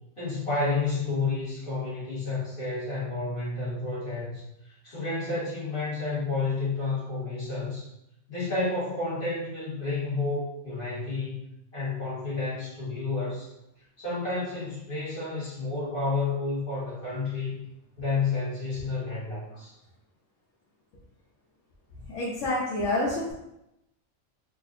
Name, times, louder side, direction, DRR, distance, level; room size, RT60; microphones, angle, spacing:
voice 1, 0.2-7.9 8.3-11.4 11.7-13.5 14.0-17.6 18.0-19.8, left 3 dB, 45° left, -10 dB, 1.7 m, -30 dB
voice 2, 22.1-23.3, left 2 dB, 85° left, -5 dB, 1.1 m, -28 dB
4.4 x 2.5 x 2.6 m, 0.85 s
omnidirectional pair, 1.2 m